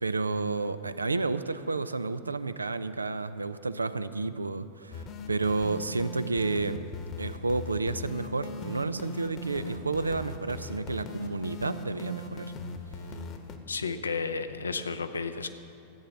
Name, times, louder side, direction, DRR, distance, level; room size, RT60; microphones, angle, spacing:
voice 1, 0.0-6.8 7.2-12.5, right 3 dB, 80° right, 12 dB, 0.5 m, -31 dB
sound 1, 4.9-13.6, left 3 dB, 35° left, 1.1 m, -40 dB
voice 2, 13.7-15.5, left 4 dB, 75° left, 9 dB, 0.7 m, -32 dB
13.5 x 8.8 x 6.2 m, 2.8 s
figure-of-eight pair, 90°, 0 cm